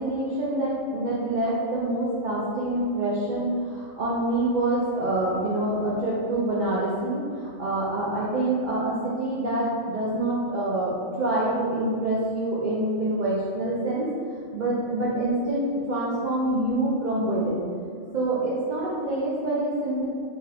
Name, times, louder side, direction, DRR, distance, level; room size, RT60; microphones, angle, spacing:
voice 1, 0.0-14.1 14.5-17.7 18.1-20.1, right 1 dB, 80° right, -7 dB, 0.4 m, -26 dB
2.8 x 2.4 x 3.3 m, 2.1 s
omnidirectional pair, 1.4 m